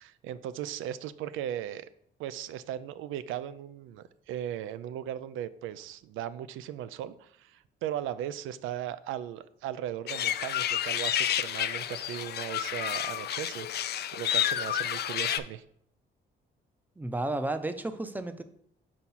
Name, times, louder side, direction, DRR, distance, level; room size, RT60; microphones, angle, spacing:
voice 1, 0.0-1.9 2.2-13.9 14.2-15.6, right 11 dB, 85° right, 15 dB, 0.4 m, -37 dB
sound 1, 10.1-15.4, left 11 dB, 55° left, 0.4 m, -30 dB
voice 2, 17.0-18.4, right 2 dB, 10° right, 9 dB, 0.5 m, -32 dB
4.6 x 4.2 x 5.6 m, 0.70 s
cardioid pair, 90°, 20 cm